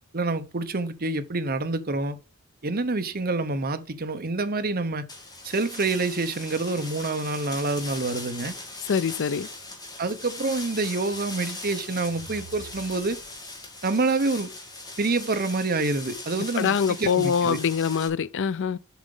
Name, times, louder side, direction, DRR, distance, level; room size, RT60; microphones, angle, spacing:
voice 1, 0.1-2.2 2.6-5.1 5.4-8.5 10.0-13.2 13.8-14.5 15.0-17.6, right 3 dB, 45° right, 0.9 m, -27 dB
sound 1, 5.1-18.1, left 2 dB, 20° left, 2.1 m, -39 dB
voice 2, 8.9-9.5 16.6-18.8, left 7 dB, 55° left, 0.4 m, -24 dB
sound 2, 11.8-13.8, right 2 dB, 85° right, 1.6 m, -49 dB
7.3 x 5.0 x 5.3 m
head